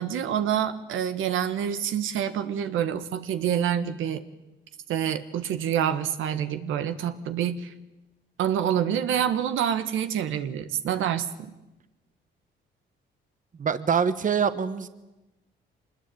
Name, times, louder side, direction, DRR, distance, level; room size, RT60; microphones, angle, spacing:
voice 1, 0.0-4.2 4.9-7.7 8.4-11.5, right 9 dB, 80° right, 10 dB, 1.5 m, -27 dB
voice 2, 13.6-14.9, right 6 dB, 40° right, 12 dB, 1.3 m, -24 dB
24.5 x 20.5 x 8.6 m, 1.0 s
cardioid pair, 90°, 20 cm